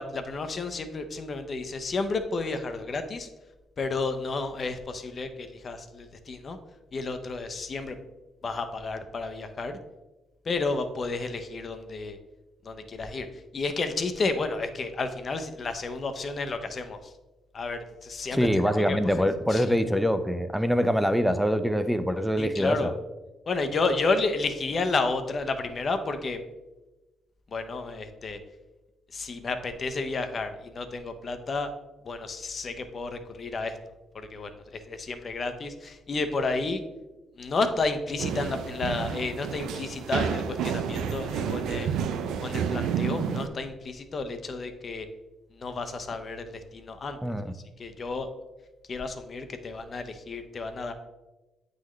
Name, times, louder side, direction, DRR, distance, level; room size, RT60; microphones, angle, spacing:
voice 1, 0.0-3.3 3.8-6.6 6.9-8.0 8.4-9.8 10.5-12.2 12.6-13.3 13.5-17.1 17.5-19.7 22.4-22.9 23.5-26.4 27.5-28.4 29.1-31.7 32.1-33.8 34.1-36.8 37.4-42.0 42.4-45.1 45.5-46.5 46.7-47.2 47.8-48.3 48.9-50.9, left 3 dB, 45° left, 8 dB, 0.7 m, -31 dB
voice 2, 18.3-22.9 47.2-47.5, equal, ahead, 10 dB, 0.5 m, -24 dB
sound 1, 38.2-43.5, right 7 dB, 85° right, 0.4 m, -30 dB
8.6 x 3.9 x 3.1 m, 1.1 s
cardioid pair, 90°, 0 cm